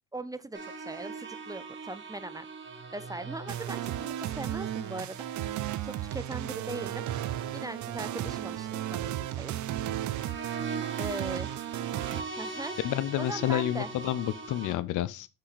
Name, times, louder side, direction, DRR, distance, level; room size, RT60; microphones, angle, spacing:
voice 1, 0.1-2.5 2.9-5.3 5.8-7.0 7.5-9.5 11.0-11.5 12.4-12.8 13.2-13.9, right 2 dB, 10° right, 0.4 m, -39 dB
sound 1, 0.5-14.7, right 4 dB, 40° right, 1.7 m, -42 dB
sound 2, 3.5-12.2, right 13 dB, 75° right, 0.6 m, -34 dB
voice 2, 12.8-15.3, left 13 dB, 80° left, 0.6 m, -29 dB
5.9 x 5.3 x 4.1 m
cardioid pair, 90°, 30 cm